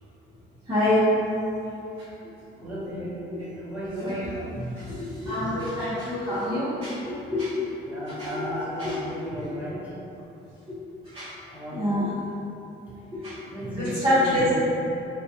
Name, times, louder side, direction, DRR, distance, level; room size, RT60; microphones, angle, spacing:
voice 1, 0.7-1.1 3.4-3.5 4.0-9.6 11.1-11.3 11.7-12.1 13.1-13.4 13.7-14.6, left 1 dB, 25° right, -13 dB, 1.0 m, -27 dB
voice 2, 2.6-4.4 7.8-9.9 11.5-12.0 13.4-14.6, equal, 10° right, -11 dB, 1.4 m, -35 dB
4.0 x 2.3 x 2.9 m, 2.9 s
cardioid pair, 90°, 20 cm